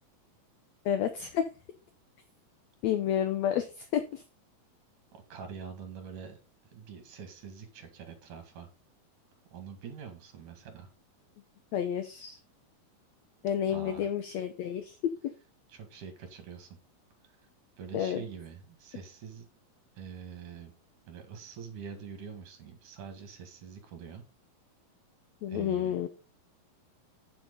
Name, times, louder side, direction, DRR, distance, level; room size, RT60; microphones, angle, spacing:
voice 1, 0.8-1.4 2.8-4.2 11.7-12.4 13.4-15.0 17.9-18.2 25.4-26.1, left 9 dB, 75° left, 9 dB, 1.6 m, -30 dB
voice 2, 5.1-6.4 6.7-8.7 9.5-10.9 13.7-14.1 15.7-16.7 17.8-19.5 20.0-20.7 21.1-24.2 25.5-26.0, right 7 dB, 65° right, 6 dB, 3.4 m, -45 dB
8.8 x 7.6 x 4.0 m, 0.30 s
omnidirectional pair, 4.0 m